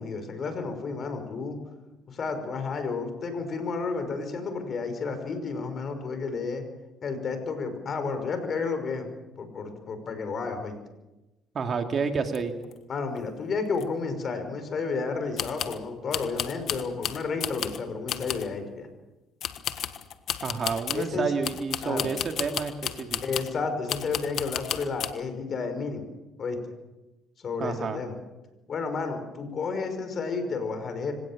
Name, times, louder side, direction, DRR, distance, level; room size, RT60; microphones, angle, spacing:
voice 1, 0.0-1.6 2.1-6.6 7.0-9.1 9.4-10.7 12.9-18.9 20.9-21.3 21.8-22.1 23.2-26.1 26.4-26.6 27.4-28.2 28.7-31.1, left 4 dB, 45° left, 8 dB, 5.6 m, -31 dB
voice 2, 11.5-12.5 20.4-23.2 27.6-28.0, right 5 dB, 45° right, 5 dB, 2.6 m, -29 dB
sound 1, 12.3-12.4 12.6-12.7 13.2-13.3 13.8-13.9 15.4-15.8 16.1-17.8 18.1-18.5 19.4-21.1 21.4-23.6 23.9-25.1, left 10 dB, 65° left, 1.5 m, -33 dB
25.5 x 17.5 x 7.5 m, 1.0 s
cardioid pair, 90°, 0 cm